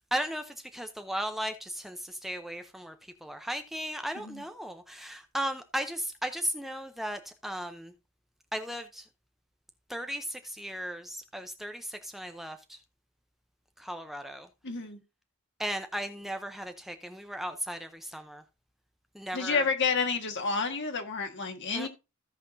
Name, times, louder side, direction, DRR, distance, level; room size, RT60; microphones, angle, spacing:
voice 1, 0.1-2.9 3.2-7.9 8.5-9.1 9.9-12.8 13.8-14.5 15.6-18.4 19.1-19.7 21.7-21.9, equal, ahead, 0.6 m, -36 dB
voice 2, 14.6-15.0 19.3-21.9, left 5 dB, 55° left, 1.6 m, -30 dB
16.0 x 5.8 x 2.6 m
head